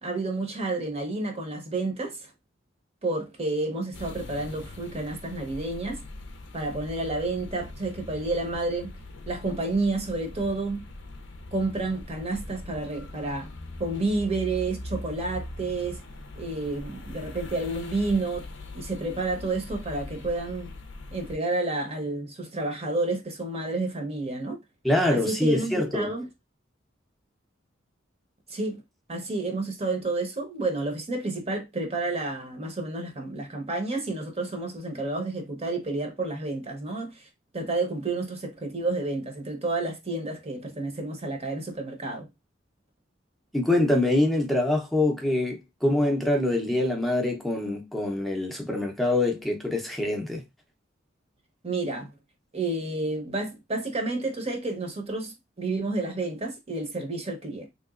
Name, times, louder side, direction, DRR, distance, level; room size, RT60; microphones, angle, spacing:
voice 1, 0.0-2.3 3.0-6.0 6.5-8.9 9.3-10.8 11.5-13.5 13.8-16.0 16.4-18.5 18.7-20.7 21.1-24.6 25.1-26.3 28.5-28.8 29.1-37.3 37.5-42.3 51.6-52.1 52.5-57.7, right 2 dB, 35° right, 0.8 m, -30 dB
sound 1, 3.9-21.4, left 2 dB, 65° left, 0.5 m, -41 dB
voice 2, 24.8-26.1 43.5-50.4, left 1 dB, ahead, 0.6 m, -25 dB
3.4 x 2.9 x 2.4 m
head